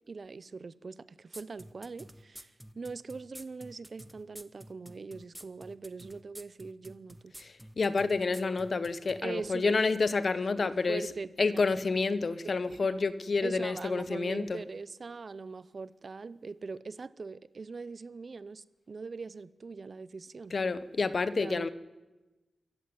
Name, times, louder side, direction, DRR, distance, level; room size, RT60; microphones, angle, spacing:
voice 1, 0.1-7.3 9.2-9.8 10.6-11.7 12.4-12.5 12.9-13.0 13.4-20.5 21.4-21.7, right 4 dB, 40° right, 0.7 m, -42 dB
sound 1, 1.3-9.2, right 1 dB, 5° right, 1.0 m, -49 dB
voice 2, 7.4-11.1 11.4-14.6 20.5-21.7, left 4 dB, 40° left, 1.0 m, -29 dB
24.0 x 14.5 x 9.7 m
wide cardioid pair, 170°, 0 cm